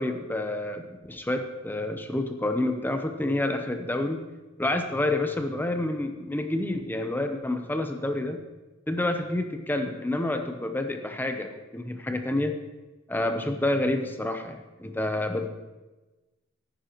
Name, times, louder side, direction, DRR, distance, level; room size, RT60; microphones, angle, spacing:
voice 1, 0.0-4.2 4.6-8.4 8.9-12.5 13.1-15.5, left 1 dB, 10° left, 6 dB, 0.7 m, -28 dB
15.0 x 10.0 x 3.0 m, 1.1 s
head